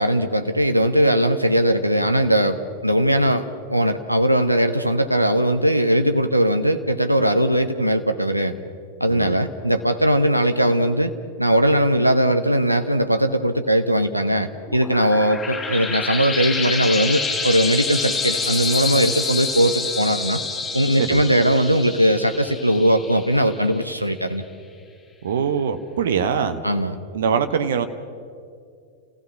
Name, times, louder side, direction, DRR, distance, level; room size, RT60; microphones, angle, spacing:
voice 1, 0.0-3.4 3.7-8.6 9.0-11.1 11.4-20.4 20.7-24.4 26.6-26.9, right 1 dB, 90° right, 7 dB, 0.9 m, -19 dB
voice 2, 9.1-9.4 21.0-21.3 25.2-26.6 27.1-27.9, right 7 dB, 60° right, 9 dB, 1.1 m, -23 dB
sound 1, 14.6-23.8, left 4 dB, 15° left, 7.9 m, -27 dB
30.0 x 16.0 x 6.0 m, 2.3 s
figure-of-eight pair, 90°, 0 cm